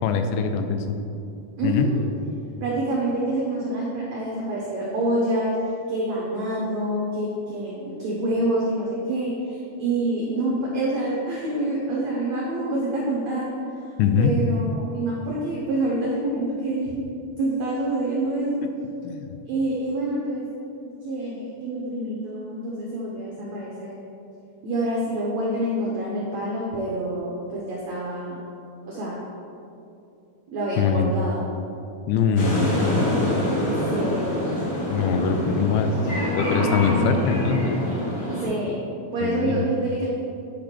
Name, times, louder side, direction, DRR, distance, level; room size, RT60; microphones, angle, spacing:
voice 1, 0.0-1.0 1.6-1.9 14.0-14.4 18.6-18.7 19.0-19.3 30.8-31.1 32.1-33.4 34.9-35.9 36.3-37.8 39.2-39.7, left 6 dB, 90° left, 7 dB, 2.6 m, -23 dB
voice 2, 1.6-2.0 2.6-5.5 5.9-13.5 14.2-17.0 17.4-18.7 19.5-20.5 20.8-23.9 24.6-28.4 28.9-29.2 30.5-31.5 33.9-34.4 38.4-38.9 39.1-40.0, right 1 dB, 85° right, -4 dB, 1.5 m, -27 dB
sound 1, 32.4-38.5, left 1 dB, 50° left, 1.3 m, -26 dB
8.5 x 5.1 x 4.4 m, 2.7 s
omnidirectional pair, 4.5 m